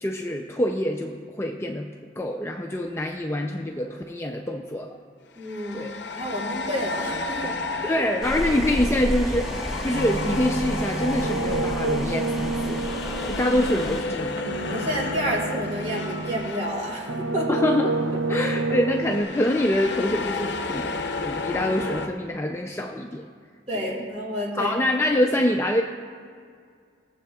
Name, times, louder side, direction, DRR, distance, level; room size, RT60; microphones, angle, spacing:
voice 1, 0.0-1.9 2.2-5.0 5.7-5.9 7.9-12.8 13.3-14.5 17.5-23.3 23.7-24.0 24.5-25.8, left 1 dB, 15° left, 1 dB, 0.4 m, -25 dB
sound 1, 2.7-2.9 5.4-17.8 18.0-18.2 19.0-22.1, left 3 dB, 60° left, 0.6 m, -33 dB
voice 2, 5.4-5.9 6.2-7.6 7.8-8.1 14.7-17.5 18.1-18.2 18.7-18.8 23.7-24.8, equal, 35° right, -3 dB, 2.2 m, -29 dB
sound 2, 8.2-14.0, equal, ahead, 0.8 m, -31 dB
sound 3, 9.9-16.6 17.0-19.2, right 3 dB, 80° right, 0.5 m, -29 dB
21.0 x 7.6 x 2.3 m, 2.1 s
head